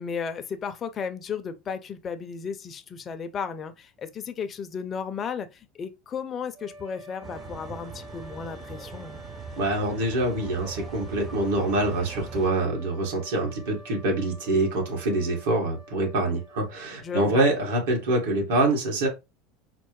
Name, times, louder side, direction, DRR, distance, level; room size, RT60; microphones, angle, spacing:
voice 1, 0.0-9.2 17.0-17.5, left 6 dB, 25° left, 0.4 m, -34 dB
sound 1, 6.5-17.5, equal, 45° right, 1.0 m, -48 dB
sound 2, 7.2-12.5, right 5 dB, 20° right, 0.5 m, -41 dB
voice 2, 9.6-19.1, right 2 dB, 80° right, 1.6 m, -25 dB
4.2 x 2.1 x 3.0 m
supercardioid pair, 140°, 0 cm